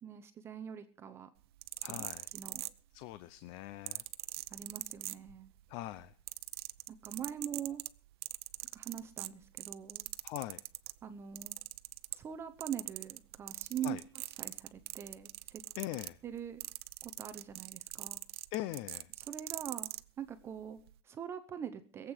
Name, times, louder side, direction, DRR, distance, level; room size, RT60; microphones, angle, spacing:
voice 1, 0.0-1.3 1.9-2.1 2.3-2.6 4.5-5.5 6.9-7.8 8.7-10.1 11.0-11.6 12.1-14.0 14.4-15.6 16.2-16.6 17.0-18.2 19.2-22.1, right 9 dB, 20° right, 10 dB, 0.7 m, -43 dB
sound 1, 1.4-3.2 3.9-5.6 5.9-11.0 11.4-12.4 12.6-20.0 20.8-20.9, right 17 dB, 75° right, 0.7 m, -42 dB
voice 2, 1.8-2.3 2.9-4.0 5.7-6.1 10.2-10.6 13.8-14.0 15.8-16.2 18.5-19.1, left 15 dB, 40° left, 15 dB, 0.6 m, -41 dB
21.5 x 8.0 x 6.4 m, 0.42 s
supercardioid pair, 175°, 13 cm